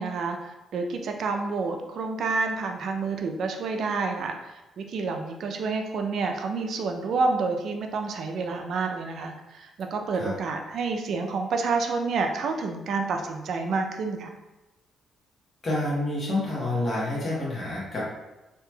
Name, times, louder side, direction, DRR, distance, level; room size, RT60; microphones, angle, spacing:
voice 1, 0.0-14.3, right 4 dB, 65° right, 4 dB, 0.4 m, -29 dB
voice 2, 15.6-18.1, left 1 dB, 40° left, -6 dB, 1.0 m, -28 dB
3.0 x 2.8 x 2.2 m, 1.0 s
cardioid pair, 90°, 0 cm